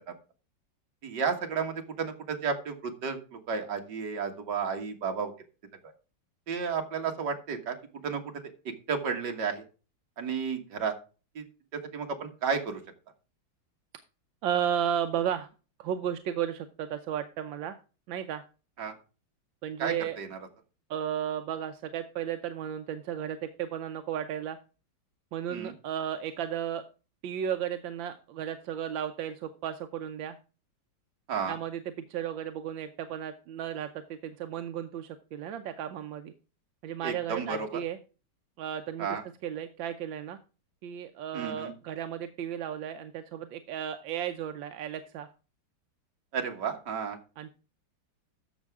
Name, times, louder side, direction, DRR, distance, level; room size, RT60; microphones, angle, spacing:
voice 1, 1.0-5.3 6.5-7.8 8.0-8.2 8.9-9.6 10.2-10.9 11.4-11.5 11.7-12.8 18.8-18.9 19.8-20.3 25.5-25.7 31.3-31.6 37.0-37.7 39.0-39.2 41.3-41.7 46.3-47.2, right 6 dB, 65° right, 4 dB, 2.2 m, -32 dB
voice 2, 14.4-15.5 15.8-17.7 18.1-18.4 19.6-20.2 20.9-24.6 25.3-26.8 27.2-30.4 31.5-31.8 32.1-36.3 36.8-38.0 38.6-39.1 39.4-40.4 40.8-45.3 47.4-47.5, right 9 dB, 85° right, 8 dB, 1.5 m, -34 dB
14.0 x 6.1 x 3.5 m, 0.34 s
omnidirectional pair, 2.0 m